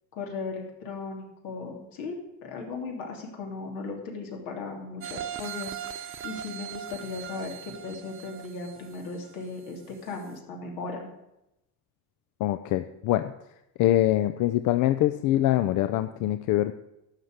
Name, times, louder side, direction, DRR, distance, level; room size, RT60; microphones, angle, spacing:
voice 1, 0.1-11.1, left 4 dB, 90° left, 1 dB, 3.1 m, -37 dB
sound 1, 5.0-9.8 10.2-10.3, right 9 dB, 40° right, 0.9 m, -39 dB
voice 2, 12.4-13.3 13.8-16.7, left 14 dB, 70° left, 10 dB, 0.6 m, -24 dB
11.5 x 5.9 x 8.0 m, 0.87 s
cardioid pair, 120°, 32 cm